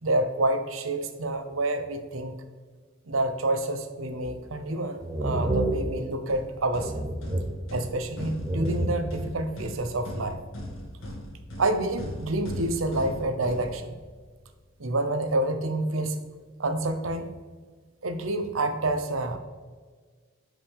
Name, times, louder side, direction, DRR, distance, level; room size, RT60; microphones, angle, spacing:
voice 1, 0.0-2.3 3.1-7.1 7.7-10.4 11.6-14.0 14.8-16.2 16.6-17.3 18.0-19.4, right 2 dB, 80° right, 8 dB, 0.8 m, -28 dB
sound 1, 4.2-4.7 5.0-6.5 6.7-8.1 8.4-9.4, right 1 dB, 15° right, 0.8 m, -30 dB
sound 2, 6.3-14.3, left 1 dB, 75° left, 2.1 m, -39 dB
11.0 x 5.2 x 3.5 m, 1.5 s
head